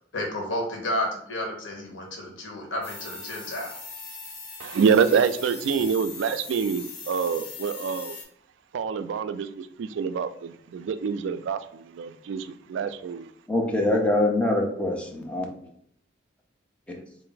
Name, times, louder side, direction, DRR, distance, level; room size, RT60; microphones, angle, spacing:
voice 1, 0.1-3.7, left 1 dB, 90° left, 0 dB, 0.9 m, -31 dB
sound 1, 2.8-8.2, left 4 dB, 60° left, 1.4 m, -40 dB
voice 2, 4.6-8.2 8.7-13.3, right 6 dB, 70° right, 11 dB, 0.3 m, -26 dB
voice 3, 13.5-15.4 16.9-17.0, left 1 dB, 5° left, 0 dB, 0.6 m, -24 dB
3.4 x 2.5 x 3.8 m, 0.65 s
head